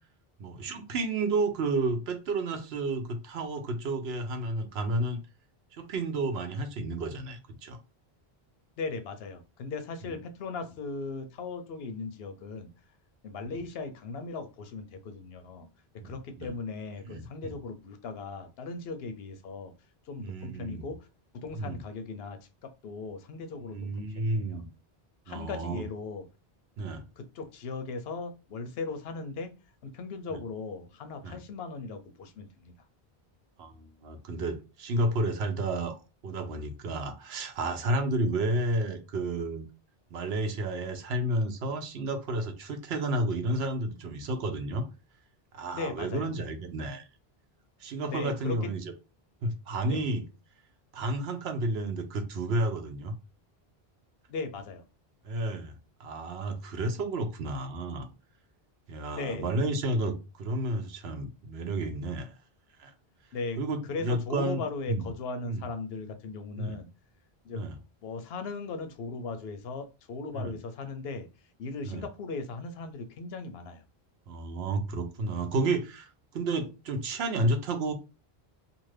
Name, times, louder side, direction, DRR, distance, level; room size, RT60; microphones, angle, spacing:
voice 1, 0.4-5.2 5.7-7.8 10.1-10.2 16.0-16.5 17.0-17.5 20.2-20.9 21.6-21.8 23.7-24.7 25.3-25.8 26.8-27.0 30.3-30.4 31.2-31.4 33.6-39.7 40.1-44.8 45.5-47.1 47.8-48.8 49.4-50.2 50.9-53.1 55.2-55.7 56.0-58.1 58.9-62.3 62.8-62.9 63.6-65.1 65.5-65.6 66.6-66.8 67.5-67.7 70.3-70.5 71.8-72.0 74.3-77.9, right 2 dB, 85° right, 0.9 m, -31 dB
voice 2, 8.8-12.7 13.2-15.7 16.0-19.7 20.1-21.1 21.3-24.6 25.3-26.2 27.2-29.5 29.8-32.7 45.7-46.3 48.1-48.7 49.9-50.0 54.3-54.8 59.1-59.5 63.3-63.6 63.9-66.9 67.4-67.6 68.0-71.3 71.6-73.8, left 4 dB, 80° left, 0.8 m, -38 dB
2.6 x 2.4 x 3.2 m
omnidirectional pair, 1.0 m